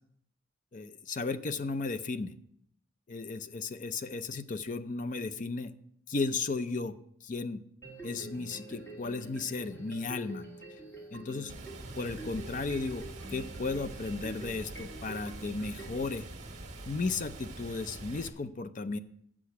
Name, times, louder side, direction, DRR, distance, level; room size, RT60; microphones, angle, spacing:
voice 1, 0.7-2.4 3.1-5.7 6.1-7.0 7.2-7.6 8.0-10.4 11.1-11.5 12.0-13.0 13.3-16.3 16.9-19.0, left 3 dB, 40° left, 12 dB, 0.5 m, -35 dB
sound 1, 7.8-16.1, right 2 dB, 15° left, 2.0 m, -47 dB
Water, 11.5-18.3, right 2 dB, 35° right, 1.5 m, -45 dB
8.3 x 7.5 x 5.8 m, 0.70 s
head